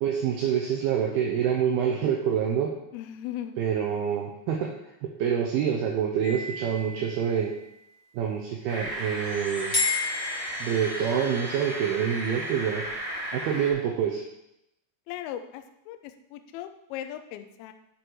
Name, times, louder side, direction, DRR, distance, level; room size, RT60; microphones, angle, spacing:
voice 1, 0.0-2.7 3.6-4.7 5.2-7.5 8.1-9.7 10.6-12.8 13.3-14.2, right 8 dB, 75° right, 0 dB, 2.5 m, -26 dB
voice 2, 2.9-3.6 15.1-17.7, left 11 dB, 85° left, 7 dB, 2.2 m, -38 dB
sound 1, 6.2-7.8 9.7-11.3, left 4 dB, 30° left, 2.7 m, -32 dB
sound 2, 8.7-13.7, right 1 dB, 30° right, 1.0 m, -35 dB
sound 3, 8.9-13.9, left 1 dB, 50° right, 4.0 m, -46 dB
10.0 x 5.2 x 4.7 m, 0.84 s
omnidirectional pair, 5.0 m